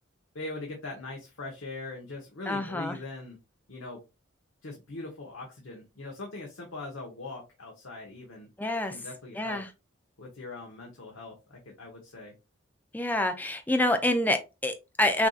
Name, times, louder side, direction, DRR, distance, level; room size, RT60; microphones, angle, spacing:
voice 1, 0.3-3.4 3.7-4.0 4.6-8.5 8.9-9.6 10.2-12.3, left 2 dB, 85° left, -1 dB, 1.1 m, -41 dB
voice 2, 2.5-3.0 8.6-8.9 9.4-9.7 12.9-15.3, left 1 dB, 10° left, 7 dB, 0.5 m, -27 dB
5.8 x 2.7 x 2.4 m, 0.26 s
head